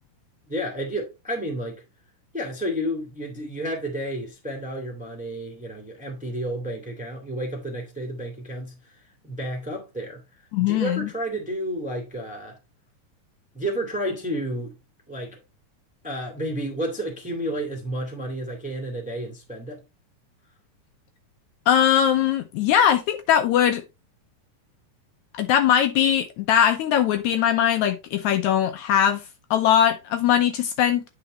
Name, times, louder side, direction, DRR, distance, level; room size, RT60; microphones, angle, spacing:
voice 1, 0.5-1.8 2.3-8.8 9.2-10.2 10.6-12.6 13.5-14.7 15.1-15.4 16.0-19.8, equal, 5° right, 1.2 m, -31 dB
voice 2, 10.5-11.1 21.7-23.8 25.3-29.2 29.5-31.0, left 9 dB, 75° left, 1.9 m, -20 dB
9.0 x 5.1 x 3.0 m
omnidirectional pair, 3.7 m